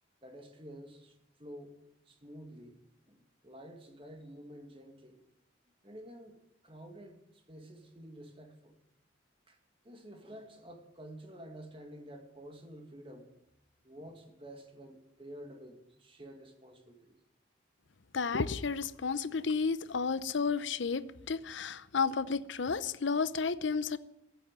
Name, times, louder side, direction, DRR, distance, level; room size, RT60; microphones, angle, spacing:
voice 1, 0.2-1.8 2.1-5.2 5.8-6.4 6.6-8.8 9.5-9.6 9.8-13.4 13.8-17.2, equal, 25° right, 2.0 m, -50 dB
voice 2, 18.1-24.0, left 5 dB, 70° left, 0.7 m, -32 dB
15.0 x 8.3 x 9.0 m
head